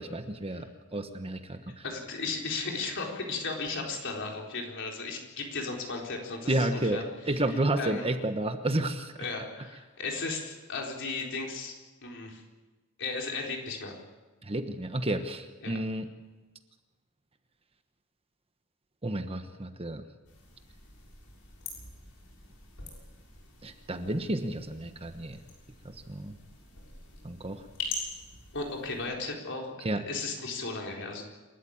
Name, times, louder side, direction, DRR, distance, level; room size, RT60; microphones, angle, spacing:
voice 1, 0.0-1.8 6.5-9.1 14.4-16.1 19.0-20.0 23.6-25.4 25.8-26.3 27.2-27.6 29.8-30.0, right 1 dB, 25° right, 7 dB, 1.2 m, -31 dB
voice 2, 1.8-7.0 7.8-8.0 9.2-11.8 12.0-12.4 13.0-13.9 15.6-15.7 28.5-29.7 30.1-31.2, left 3 dB, 60° left, 0 dB, 4.2 m, -35 dB
sound 1, 20.2-29.1, left 3 dB, 85° left, 6.8 m, -44 dB
28.0 x 13.0 x 8.8 m, 1.2 s
head